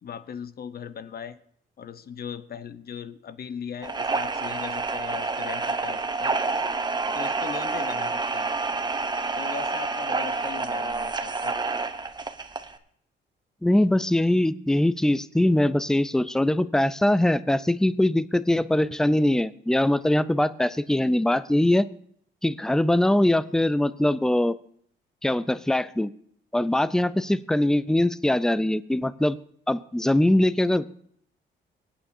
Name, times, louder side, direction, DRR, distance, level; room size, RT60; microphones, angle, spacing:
voice 1, 0.0-1.4 1.8-6.4 7.1-8.5 9.4-11.6, left 7 dB, 50° left, 12 dB, 0.9 m, -38 dB
sound 1, 3.8-12.8, right 3 dB, 20° right, 0.8 m, -28 dB
voice 2, 13.6-21.9 22.4-24.6 25.2-26.1 26.5-29.4 29.7-30.9, left 1 dB, 5° left, 16 dB, 0.4 m, -22 dB
26.0 x 8.8 x 2.7 m, 0.64 s
cardioid pair, 90°, 20 cm